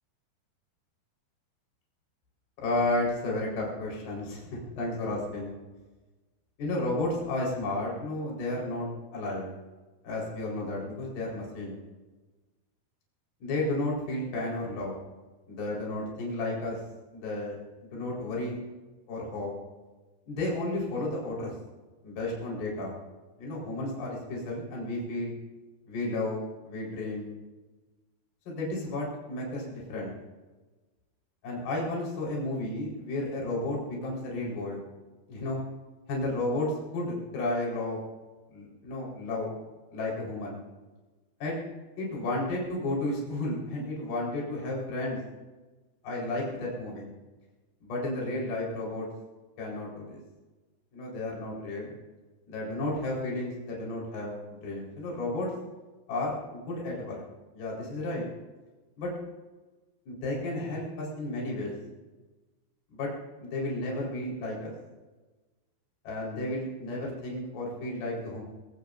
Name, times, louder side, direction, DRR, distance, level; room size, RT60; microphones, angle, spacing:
voice 1, 2.6-5.5 6.6-9.5 10.0-11.8 13.4-15.0 15.5-16.8 17.1-17.6 17.9-18.6 19.1-19.5 20.3-21.5 22.0-22.9 23.4-25.4 25.9-27.3 28.5-30.1 31.4-34.8 35.3-35.6 36.1-38.0 38.5-39.5 39.9-40.6 41.4-41.6 42.0-45.2 46.0-47.1 47.8-49.1 49.6-50.2 50.9-51.9 52.5-55.5 56.1-57.2 57.5-58.3 59.0-59.1 60.1-61.8 62.9-63.1 63.4-64.7 66.0-68.4, left 2 dB, 55° left, -3 dB, 6.0 m, -32 dB
24.5 x 16.5 x 2.6 m, 1.2 s
omnidirectional pair, 5.2 m